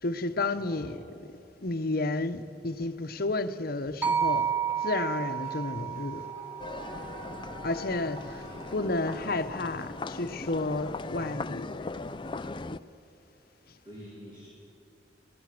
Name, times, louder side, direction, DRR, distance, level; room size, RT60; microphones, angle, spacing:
voice 1, 0.0-1.0 1.6-4.5 4.8-6.3 7.6-8.4 8.7-11.7, left 2 dB, 55° left, 1.0 m, -31 dB
voice 2, 0.5-0.9 8.4-8.7 13.8-14.5, equal, 25° right, 4.4 m, -48 dB
sound 1, 4.0-8.2, right 8 dB, 10° right, 1.1 m, -32 dB
sound 2, 4.0-9.3, equal, 45° right, 5.0 m, -49 dB
sound 3, 6.6-12.8, left 3 dB, 25° left, 0.5 m, -39 dB
26.5 x 18.0 x 7.7 m
head